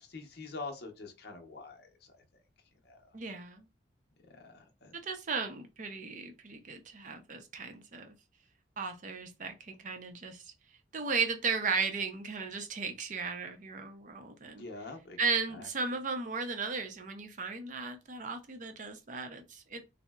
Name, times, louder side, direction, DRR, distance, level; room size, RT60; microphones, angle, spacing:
voice 1, 0.0-2.1 2.8-3.1 4.3-4.9 14.4-15.2 15.5-15.7, left 3 dB, 55° left, 0.7 m, -45 dB
voice 2, 3.1-3.6 4.9-8.1 8.8-10.4 10.9-14.7 15.2-19.8, right 4 dB, 40° right, 0.5 m, -36 dB
3.7 x 2.0 x 2.2 m
head